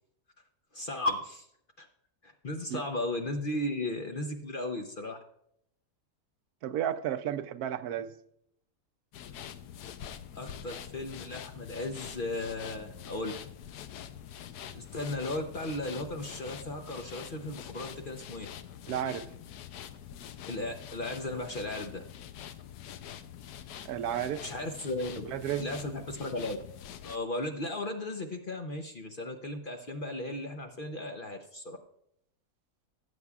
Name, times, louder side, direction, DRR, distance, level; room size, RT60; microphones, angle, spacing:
voice 1, 0.7-1.5 1.8-1.9 2.2-5.2 10.3-13.3 14.7-18.5 20.5-22.0 24.4-25.3 25.6-26.6 27.0-31.8, left 1 dB, 45° left, 0.8 m, -36 dB
voice 2, 6.6-8.1 18.9-19.3 23.8-24.5 25.3-25.7, right 10 dB, 80° right, 1.1 m, -32 dB
sound 1, 9.1-27.2, left 9 dB, 90° left, 1.2 m, -45 dB
17.5 x 8.1 x 2.4 m
omnidirectional pair, 1.6 m